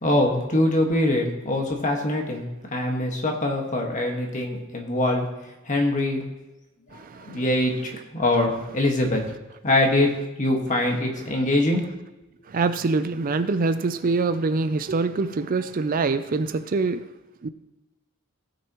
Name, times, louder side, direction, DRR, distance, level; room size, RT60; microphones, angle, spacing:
voice 1, 0.0-2.4 2.7-5.3 5.6-6.2 7.2-9.2 9.6-10.1 10.4-11.8, left 1 dB, 40° left, 1.7 m, -23 dB
voice 2, 6.9-7.4 12.5-17.1 17.4-17.5, right 3 dB, 45° right, 0.4 m, -25 dB
17.5 x 6.5 x 3.0 m
head